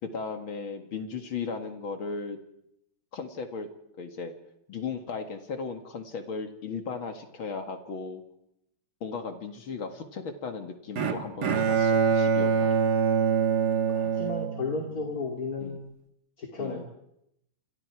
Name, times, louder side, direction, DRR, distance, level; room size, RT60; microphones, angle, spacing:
voice 1, 0.0-2.4 3.1-3.7 4.0-4.3 4.7-8.2 9.0-12.8 15.6-15.8 16.6-16.8, left 5 dB, 70° left, 5 dB, 2.7 m, -36 dB
Bowed string instrument, 11.0-15.2, right 6 dB, 50° right, 2.0 m, -25 dB
voice 2, 13.9-15.8 16.4-16.8, left 3 dB, 45° left, 1 dB, 3.0 m, -33 dB
29.0 x 26.0 x 4.8 m, 0.81 s
omnidirectional pair, 2.3 m